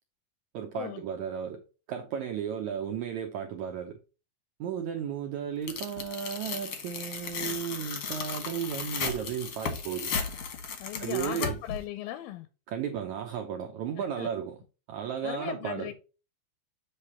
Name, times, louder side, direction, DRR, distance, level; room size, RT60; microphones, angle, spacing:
voice 1, 0.5-1.6 1.9-4.0 4.6-10.1 11.0-11.6 12.7-14.6 14.9-15.9, right 8 dB, 80° right, 1.7 m, -34 dB
Tearing, 5.7-11.8, left 5 dB, 60° left, 1.4 m, -35 dB
voice 2, 10.8-12.5 14.0-14.3 15.2-15.9, left 13 dB, 85° left, 2.4 m, -37 dB
8.0 x 3.3 x 5.6 m
omnidirectional pair, 4.2 m